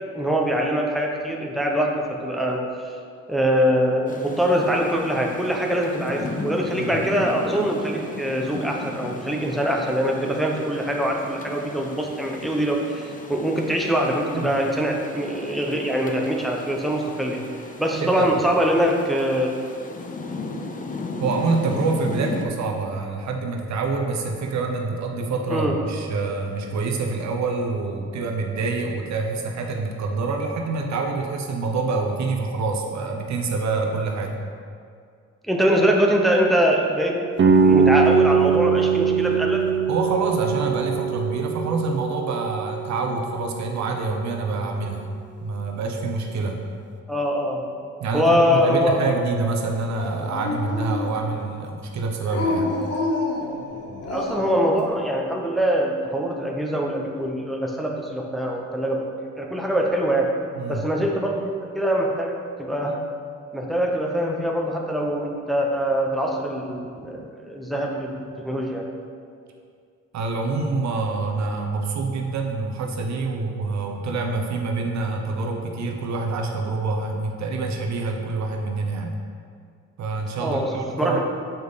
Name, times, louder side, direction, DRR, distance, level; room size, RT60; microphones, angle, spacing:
voice 1, 0.1-2.9 3.3-17.4 17.8-19.5 25.5-25.7 35.5-37.1 37.6-39.6 47.1-47.6 48.1-49.1 54.1-59.0 59.4-60.3 60.7-62.3 62.6-63.0 63.5-68.9 80.4-80.7 81.0-81.2, equal, ahead, -1 dB, 0.9 m, -23 dB
Rain, 4.1-22.5, left 3 dB, 25° left, 0.7 m, -36 dB
voice 2, 18.0-18.4 21.2-34.4 39.9-45.1 45.4-46.6 48.0-52.7 60.5-60.8 70.1-79.2 80.0-81.2, right 3 dB, 65° right, 2 dB, 0.9 m, -26 dB
sound 1, 37.4-43.2, right 5 dB, 40° right, 0.6 m, -21 dB
Dog, 49.9-51.4 52.2-54.6, left 2 dB, 55° left, 1.1 m, -28 dB
7.2 x 5.2 x 4.1 m, 2.3 s
cardioid pair, 90°, 30 cm